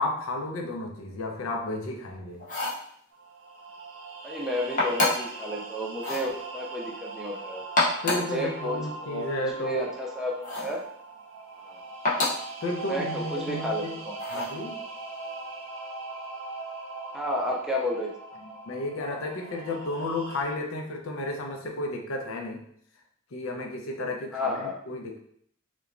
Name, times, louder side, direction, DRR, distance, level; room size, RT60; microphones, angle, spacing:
voice 1, 0.0-2.5 8.0-9.8 12.6-14.0 14.3-14.8 18.7-22.6 23.3-25.2, left 2 dB, 90° left, 2 dB, 0.5 m, -32 dB
sound 1, 2.4-2.9 4.8-5.4 6.0-6.3 7.6-8.3 10.4-10.8 12.0-12.5 14.2-14.6, left 2 dB, 40° left, 0.7 m, -27 dB
sound 2, 3.1-20.4, right 3 dB, 70° right, 0.5 m, -40 dB
voice 2, 4.2-7.6 8.1-10.8 11.6-11.8 12.9-14.5 17.1-18.1 24.3-24.8, left 1 dB, 5° right, -2 dB, 0.4 m, -32 dB
2.9 x 2.2 x 2.4 m, 0.65 s
head